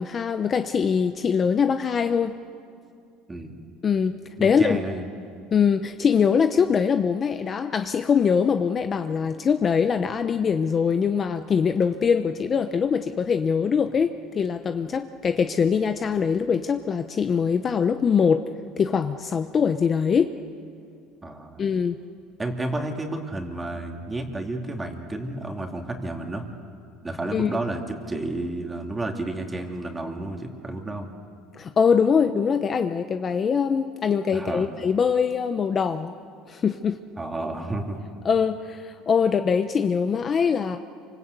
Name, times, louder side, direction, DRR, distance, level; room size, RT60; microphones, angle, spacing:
voice 1, 0.0-2.4 3.8-4.8 5.5-18.4 18.8-20.3 21.6-22.0 27.3-27.5 31.5-36.1 36.5-37.0 38.2-40.8, left 6 dB, 30° left, 8 dB, 0.8 m, -23 dB
voice 2, 3.3-3.6 4.4-5.1 21.2-21.6 22.4-26.4 27.0-31.1 34.3-34.7 37.2-38.0, right 2 dB, 15° right, 2 dB, 2.8 m, -31 dB
28.0 x 25.5 x 8.2 m, 2.3 s
cardioid pair, 135°, 0 cm